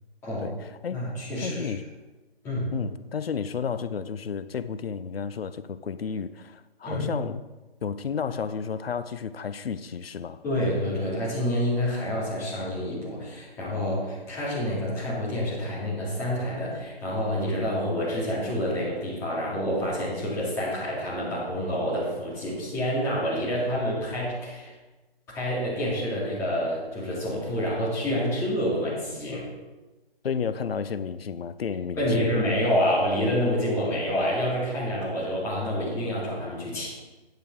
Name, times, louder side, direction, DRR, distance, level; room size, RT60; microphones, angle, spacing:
voice 1, 0.9-1.7 2.4-2.8 6.8-7.1 10.4-24.7 25.3-29.5 32.0-36.9, equal, 10° left, -8 dB, 2.3 m, -28 dB
voice 2, 1.4-1.8 2.7-7.4 7.8-10.4 30.2-32.3, left 6 dB, 75° left, 13 dB, 0.6 m, -32 dB
9.4 x 6.7 x 4.6 m, 1.2 s
hypercardioid pair, 160°, 30 cm